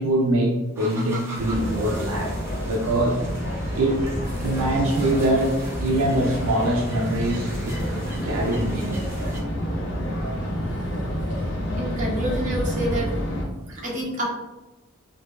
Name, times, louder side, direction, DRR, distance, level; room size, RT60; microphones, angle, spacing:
voice 1, 0.0-2.4 2.6-3.2 3.7-4.1 4.4-7.8 8.2-9.1 13.7-13.8, right 1 dB, 75° right, 0 dB, 0.4 m, -24 dB
sound 1, 0.8-9.4, right 2 dB, 10° right, 0.6 m, -41 dB
sound 2, 1.3-13.4, equal, 60° left, 0.8 m, -28 dB
voice 2, 11.8-13.1 13.5-14.3, right 1 dB, 35° right, -4 dB, 0.9 m, -28 dB
4.7 x 2.2 x 2.3 m, 1.1 s
head